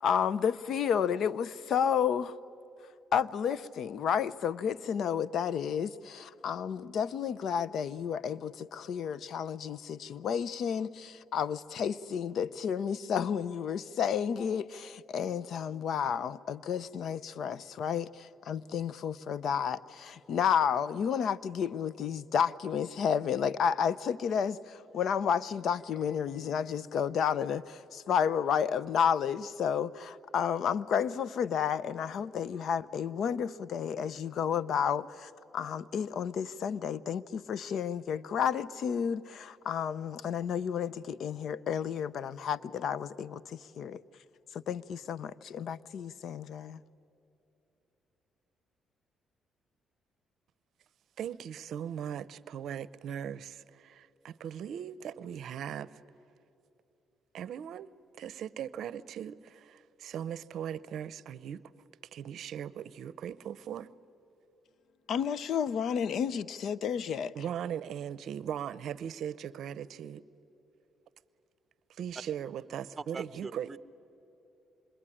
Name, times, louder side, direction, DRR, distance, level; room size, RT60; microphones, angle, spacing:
voice 1, 0.0-2.4 3.1-44.0 44.5-46.8 65.1-67.3, left 7 dB, 65° left, 0.6 m, -31 dB
voice 2, 51.2-56.0 57.3-57.9 58.2-61.6 62.1-63.9 67.3-70.2 71.9-73.8, right 9 dB, 70° right, 0.6 m, -39 dB
voice 3, 73.0-73.8, right 4 dB, 30° right, 0.9 m, -42 dB
26.5 x 22.5 x 10.0 m
cardioid pair, 90°, 0 cm